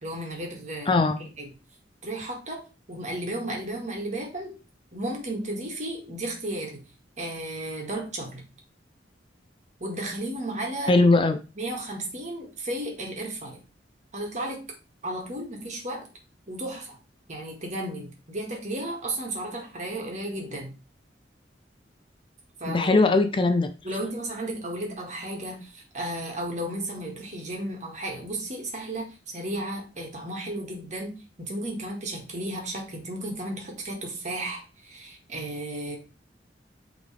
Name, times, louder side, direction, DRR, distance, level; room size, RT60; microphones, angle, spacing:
voice 1, 0.0-1.5 2.0-2.6 2.9-4.5 4.9-6.8 7.2-8.4 9.8-10.9 11.6-13.6 14.1-14.6 15.0-16.1 16.5-17.0 17.3-20.7 22.6-23.0 23.8-31.1 31.4-36.0, right 1 dB, 40° right, 0 dB, 2.0 m, -34 dB
voice 2, 0.9-1.2 10.9-11.4 22.7-23.7, left 3 dB, 30° left, 8 dB, 0.5 m, -20 dB
8.2 x 3.8 x 3.4 m, 0.31 s
head